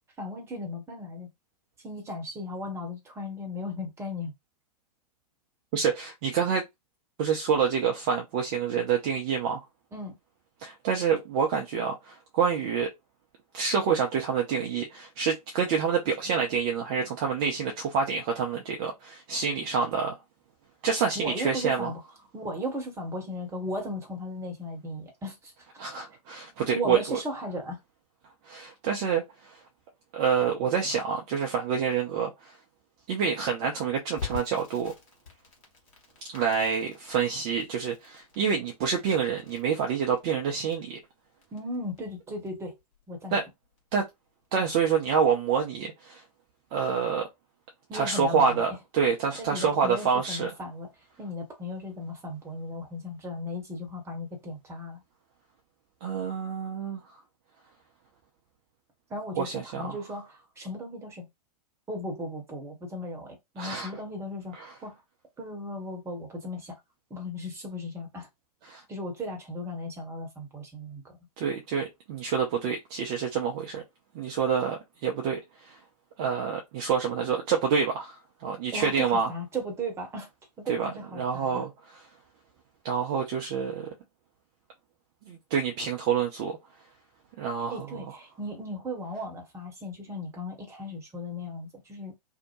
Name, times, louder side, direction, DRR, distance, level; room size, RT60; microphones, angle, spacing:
voice 1, 0.2-1.3 1.8-4.3 9.9-10.2 21.1-22.0 22.3-25.5 26.7-27.8 41.5-42.8 43.1-43.4 47.9-48.6 49.4-50.9 51.2-55.0 59.1-61.3 61.9-65.0 65.4-66.8 67.1-68.3 68.9-71.2 78.7-80.3 80.6-81.6 87.7-92.1, left 1 dB, 15° right, 1.0 m, -36 dB
voice 2, 5.7-6.6 7.2-9.6 10.6-12.9 13.5-20.2 20.8-21.9 25.8-27.2 28.5-29.6 30.1-32.6 33.1-34.9 36.3-41.0 43.3-43.4 43.9-44.1 44.5-46.2 46.7-47.3 47.9-50.5 56.0-57.0 59.4-59.9 63.6-63.9 68.7-68.8 71.4-73.8 74.1-75.8 76.2-78.2 78.4-79.3 80.7-80.9 81.2-82.0 82.8-83.9 85.3-86.6 87.4-88.0, right 6 dB, 35° right, 0.5 m, -27 dB
Crackle, 34.2-44.9, left 7 dB, 55° left, 1.2 m, -45 dB
2.7 x 2.1 x 2.9 m
figure-of-eight pair, 100°, 20 cm